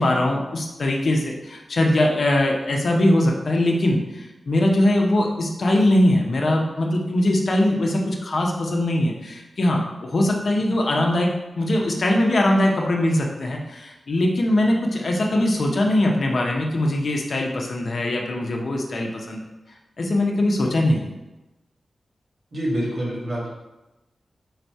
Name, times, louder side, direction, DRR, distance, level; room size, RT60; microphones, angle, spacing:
voice 1, 0.0-19.4 20.0-21.1, left 1 dB, 55° left, 1 dB, 0.7 m, -21 dB
voice 2, 22.5-23.5, equal, 60° right, -5 dB, 1.5 m, -26 dB
3.9 x 2.7 x 4.5 m, 1.0 s
wide cardioid pair, 130°, 0 cm